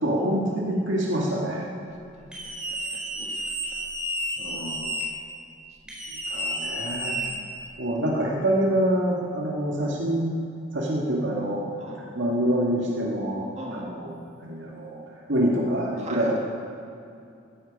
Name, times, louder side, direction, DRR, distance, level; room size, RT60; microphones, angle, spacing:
voice 1, 0.0-1.7 4.4-4.9 6.3-7.2 7.8-10.3 10.7-11.6 12.1-14.1 14.4-16.4, right 1 dB, 65° right, -3 dB, 2.1 m, -26 dB
sound 1, 2.3-5.0 5.9-7.7, equal, 5° right, 4.4 m, -31 dB
voice 2, 2.7-3.4 7.0-7.6 11.8-12.0 13.6-13.9 16.0-16.4, right 1 dB, 35° right, 0 dB, 2.2 m, -40 dB
16.0 x 14.5 x 5.4 m, 2.5 s
head